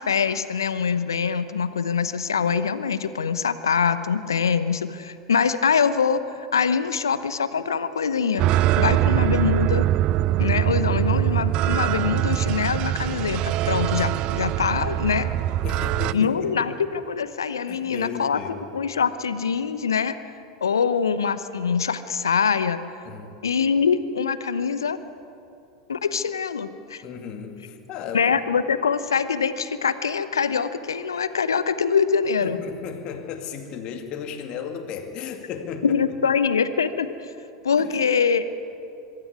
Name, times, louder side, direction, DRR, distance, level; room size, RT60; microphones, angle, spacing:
voice 1, 0.0-8.5 8.8-9.9 10.4-15.3 16.1-20.2 20.6-22.8 23.4-25.0 25.9-27.0 28.1-32.6 35.8-37.3 37.6-38.4, left 6 dB, 75° left, 13 dB, 0.9 m, -24 dB
sound 1, 8.4-16.1, right 13 dB, 45° right, 0.5 m, -23 dB
voice 2, 15.6-16.6 17.7-18.6 23.0-23.3 27.0-28.4 32.4-36.0 37.8-38.0, left 7 dB, 45° left, 5 dB, 2.3 m, -35 dB
23.5 x 13.0 x 9.7 m, 2.8 s
figure-of-eight pair, 85°, 2 cm